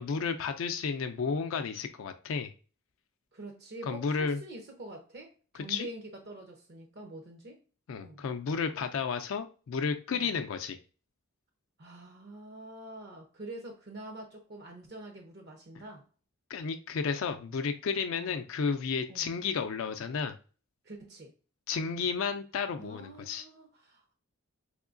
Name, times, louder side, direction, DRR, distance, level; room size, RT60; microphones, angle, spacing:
voice 1, 0.0-2.5 3.8-4.4 5.7-5.9 7.9-10.8 16.5-20.4 21.7-23.4, left 5 dB, 70° left, 0.4 m, -32 dB
voice 2, 3.3-7.6 8.0-8.2 10.1-10.3 11.8-16.0 18.2-18.3 19.1-19.3 20.8-21.3 22.8-24.1, right 2 dB, 50° right, 0.6 m, -46 dB
3.5 x 3.0 x 2.5 m
head